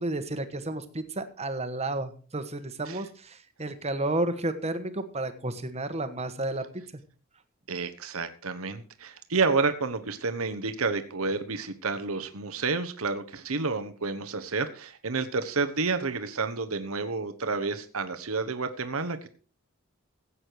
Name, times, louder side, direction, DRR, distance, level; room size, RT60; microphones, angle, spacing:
voice 1, 0.0-6.6, right 2 dB, 30° right, 9 dB, 1.4 m, -32 dB
voice 2, 7.7-19.3, right 4 dB, 75° right, 9 dB, 1.2 m, -30 dB
16.0 x 8.6 x 4.7 m, 0.38 s
head